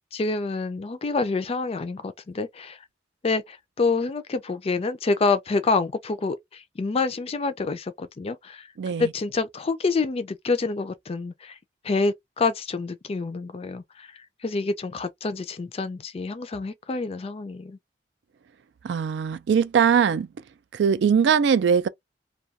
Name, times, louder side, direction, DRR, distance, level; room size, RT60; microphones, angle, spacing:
voice 1, 0.1-2.8 3.2-8.7 9.0-11.6 11.8-17.8, left 3 dB, 35° left, 0.4 m, -27 dB
voice 2, 8.8-9.1 18.8-20.3 20.7-21.9, right 7 dB, 70° right, 0.3 m, -21 dB
2.3 x 2.3 x 2.7 m
head